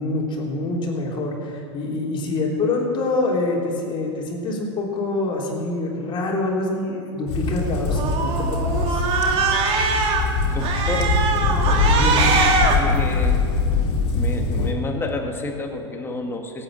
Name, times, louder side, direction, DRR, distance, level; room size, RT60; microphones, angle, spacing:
voice 1, 0.0-9.0 11.9-12.3, left 2 dB, 30° left, -2 dB, 3.7 m, -25 dB
sound 1, 7.3-14.7, left 4 dB, 70° left, 3.0 m, -22 dB
Cat, 7.9-10.2 10.6-12.8, right 4 dB, 40° right, 2.2 m, -22 dB
voice 2, 10.5-11.2 12.7-13.4 14.1-16.6, left 2 dB, 15° left, 2 dB, 2.0 m, -30 dB
17.0 x 8.9 x 7.7 m, 2.5 s
hypercardioid pair, 120°, 15 cm